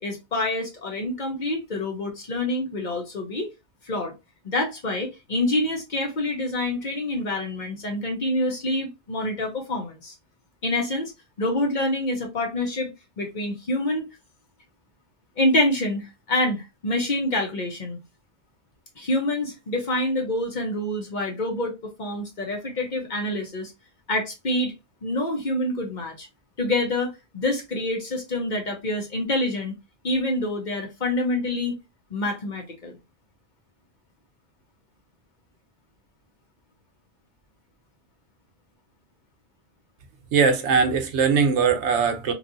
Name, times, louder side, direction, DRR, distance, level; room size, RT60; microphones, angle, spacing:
voice 1, 0.0-3.5 3.8-4.1 4.4-10.1 10.6-11.1 11.4-14.1 15.4-18.0 19.0-23.7 24.1-24.7 25.0-26.3 26.6-29.7 30.0-31.8 32.1-33.0, left 1 dB, 45° left, 0.9 m, -26 dB
voice 2, 40.3-42.3, right 5 dB, 80° right, 1.0 m, -20 dB
3.1 x 2.5 x 2.5 m
omnidirectional pair, 1.2 m